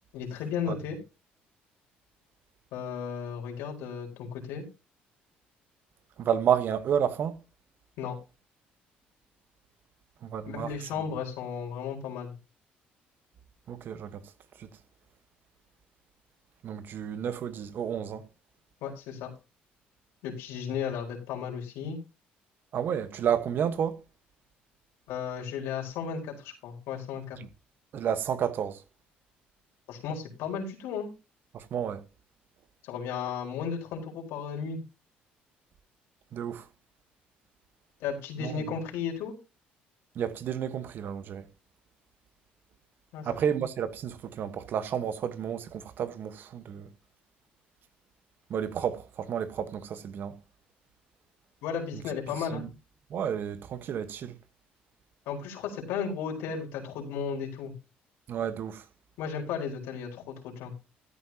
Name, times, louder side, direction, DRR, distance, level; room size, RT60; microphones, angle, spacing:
voice 1, 0.1-1.0 2.7-4.7 8.0-8.2 10.5-12.4 18.8-19.3 20.2-22.0 25.1-27.4 29.9-31.1 32.8-34.8 38.0-39.3 43.1-43.3 51.6-52.6 55.3-57.7 59.2-60.7, left 7 dB, 85° left, 4.3 m, -34 dB
voice 2, 6.2-7.4 10.2-10.7 13.7-14.2 14.6-14.7 16.6-18.3 22.7-24.0 27.9-28.8 31.5-32.0 36.3-36.7 38.4-38.8 40.1-41.5 43.2-46.9 48.5-50.4 52.5-52.7 53.1-54.4 58.3-58.8, right 8 dB, 60° right, 1.3 m, -31 dB
13.5 x 9.7 x 2.9 m
cardioid pair, 90°, 4 cm